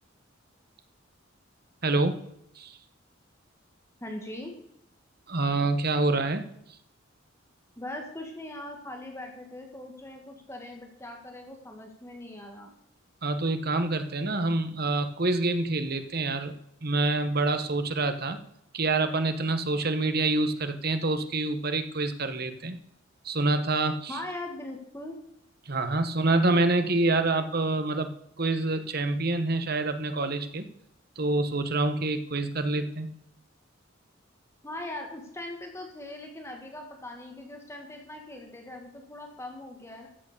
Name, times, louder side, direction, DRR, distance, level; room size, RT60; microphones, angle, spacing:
voice 1, 1.8-2.2 2.6-2.8 5.3-6.5 13.2-16.5 16.8-18.4 18.7-22.8 23.2-24.2 25.7-28.1 28.4-30.7 31.2-33.1, right 2 dB, 50° right, 9 dB, 1.3 m, -26 dB
voice 2, 4.0-4.5 7.8-12.7 24.1-25.2 34.6-40.1, left 1 dB, 15° left, 2 dB, 1.9 m, -40 dB
14.0 x 8.1 x 6.8 m, 0.74 s
head